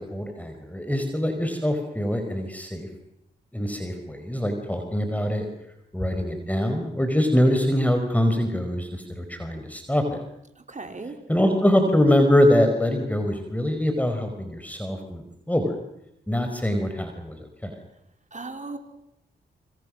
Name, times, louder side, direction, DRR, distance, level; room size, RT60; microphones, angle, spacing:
voice 1, 0.1-2.9 3.5-5.5 5.9-10.2 11.3-15.8 16.3-17.7, left 1 dB, 5° left, 5 dB, 4.9 m, -23 dB
voice 2, 10.6-11.2 18.3-18.8, right 3 dB, 35° right, 5 dB, 4.4 m, -36 dB
26.0 x 25.0 x 6.5 m, 0.81 s
supercardioid pair, 40°, 21 cm